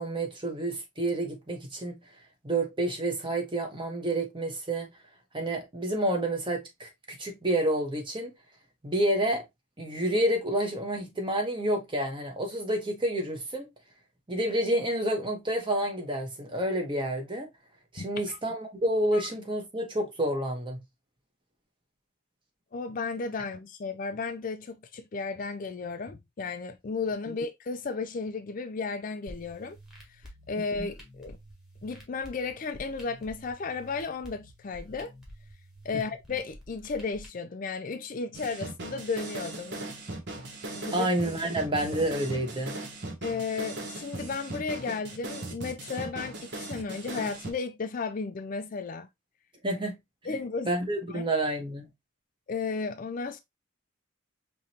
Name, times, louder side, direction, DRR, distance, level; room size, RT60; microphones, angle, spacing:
voice 1, 0.0-2.0 2.4-4.9 5.3-8.3 8.8-9.4 9.8-13.7 14.3-17.5 17.9-20.8 30.8-30.9 40.9-42.7 49.6-50.0 50.7-51.9, right 1 dB, 25° right, 1.1 m, -29 dB
voice 2, 18.0-18.4 19.1-19.2 22.7-29.8 30.1-30.2 30.5-31.4 31.8-35.1 35.8-39.8 40.7-41.1 43.2-49.1 50.2-50.7 51.1-51.3 52.5-53.4, left 4 dB, 40° left, 0.4 m, -34 dB
sound 1, 29.3-37.3, equal, ahead, 1.4 m, -49 dB
sound 2, 38.3-47.5, right 2 dB, 55° right, 0.9 m, -38 dB
4.9 x 3.0 x 2.8 m
head